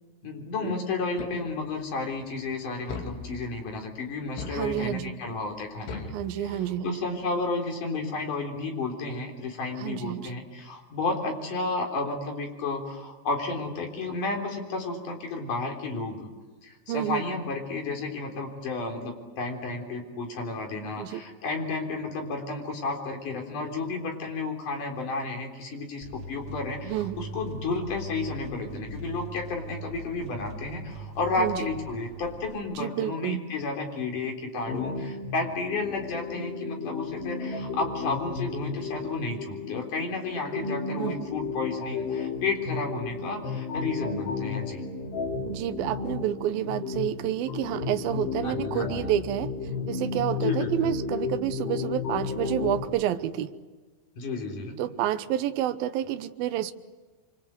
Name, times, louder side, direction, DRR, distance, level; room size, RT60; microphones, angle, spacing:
voice 1, 0.2-16.3 16.6-44.8 48.4-49.1 50.4-50.7 54.1-54.8, left 3 dB, 45° left, 2 dB, 5.0 m, -32 dB
sound 1, 1.2-1.9 2.9-3.7 4.4-5.2 5.9-6.9, left 4 dB, 90° left, 5.2 m, -39 dB
voice 2, 4.5-5.1 6.1-7.0 9.8-10.3 16.9-17.2 21.0-21.2 26.9-27.2 31.4-31.6 32.8-33.5 41.0-41.3 45.5-49.5 49.9-53.5 54.8-56.7, right 12 dB, 75° right, 9 dB, 2.3 m, -29 dB
sound 2, 26.0-32.6, right 1 dB, 25° right, 3.0 m, -40 dB
sound 3, 34.7-52.8, left 5 dB, 65° left, 6.0 m, -33 dB
26.5 x 25.0 x 8.2 m, 1.3 s
omnidirectional pair, 5.4 m